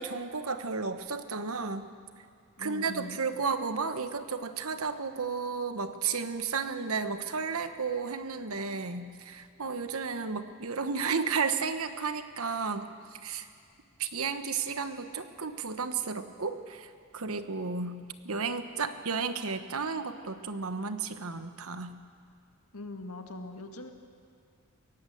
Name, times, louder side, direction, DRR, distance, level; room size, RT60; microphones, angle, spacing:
voice 1, 0.0-1.9 2.6-13.5 14.0-22.0, right 5 dB, 70° right, 9 dB, 1.2 m, -33 dB
voice 2, 2.6-3.2 22.7-23.9, left 2 dB, 80° left, 5 dB, 1.9 m, -41 dB
22.5 x 18.0 x 7.8 m, 2.3 s
head